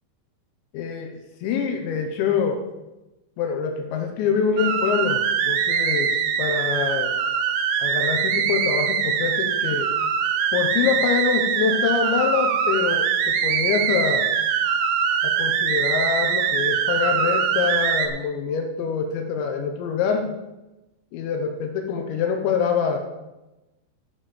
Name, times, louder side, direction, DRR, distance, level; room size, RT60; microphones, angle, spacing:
voice 1, 0.7-2.6 3.4-5.2 5.5-7.1 7.8-9.9 10.5-14.3 15.2-20.3 21.1-23.0, left 6 dB, 80° left, 4 dB, 3.2 m, -25 dB
sound 1, 4.6-18.1, right 7 dB, 80° right, 3.0 m, -23 dB
12.5 x 7.2 x 5.0 m, 1.0 s
omnidirectional pair, 5.3 m